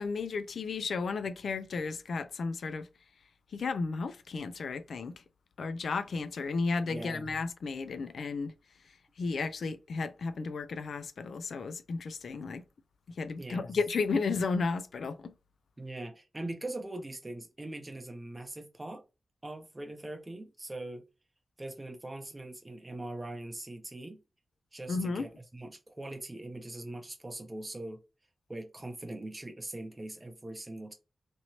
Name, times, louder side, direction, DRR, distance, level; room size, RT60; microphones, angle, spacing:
voice 1, 0.0-2.9 3.5-5.1 5.6-8.5 9.2-12.6 13.2-15.3 24.9-25.3, left 4 dB, 85° left, 0.3 m, -33 dB
voice 2, 6.9-7.3 13.4-13.7 15.8-19.0 19.4-21.0 21.6-24.2 24.7-28.0 28.5-30.9, right 2 dB, 20° right, 0.6 m, -41 dB
2.9 x 2.9 x 2.8 m
wide cardioid pair, 155°, 0 cm